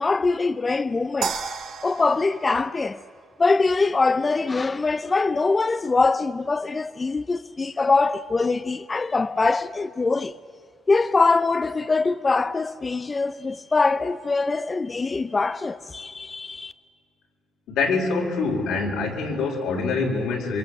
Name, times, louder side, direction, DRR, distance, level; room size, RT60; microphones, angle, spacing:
voice 1, 0.0-1.4 1.8-3.0 3.4-10.3 10.9-16.7, left 3 dB, 25° left, 0.6 m, -23 dB
sound 1, 1.2-3.6, right 6 dB, 75° right, 2.4 m, -33 dB
voice 2, 17.7-20.6, left 4 dB, 90° left, 4.5 m, -25 dB
27.5 x 25.0 x 8.1 m
cardioid pair, 115°, 0 cm